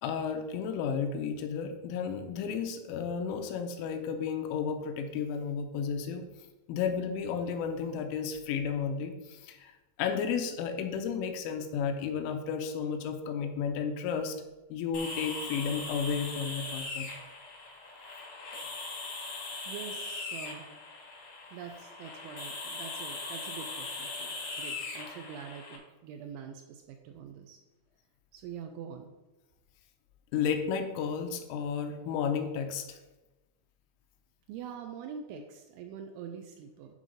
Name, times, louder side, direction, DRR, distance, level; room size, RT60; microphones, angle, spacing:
voice 1, 0.0-6.3 6.7-9.7 10.0-14.4 14.7-17.1 30.3-33.0, left 6 dB, 85° left, 5 dB, 3.3 m, -33 dB
sound 1, 14.9-25.8, left 3 dB, 70° left, 2.0 m, -40 dB
voice 2, 19.7-20.7 21.5-27.6 28.3-29.1 34.5-37.0, right 7 dB, 85° right, 5 dB, 2.7 m, -44 dB
11.0 x 3.8 x 5.1 m, 1.1 s
omnidirectional pair, 5.7 m